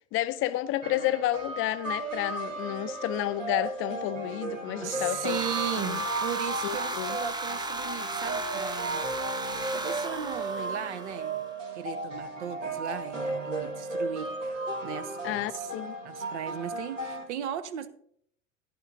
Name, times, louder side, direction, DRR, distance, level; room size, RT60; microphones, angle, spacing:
voice 1, 0.1-5.4 5.8-6.0 6.6-7.2 15.2-15.9, left 14 dB, 35° left, 0.5 m, -31 dB
sound 1, 0.8-17.2, right 2 dB, 80° right, 2.0 m, -35 dB
voice 2, 4.8-9.1 9.7-11.4 11.7-14.3 14.8-15.7 16.0-17.9, right 10 dB, 65° right, 1.0 m, -36 dB
sound 2, 5.2-11.4, right 2 dB, 10° right, 0.9 m, -35 dB
16.0 x 10.5 x 2.7 m
figure-of-eight pair, 75°, 38 cm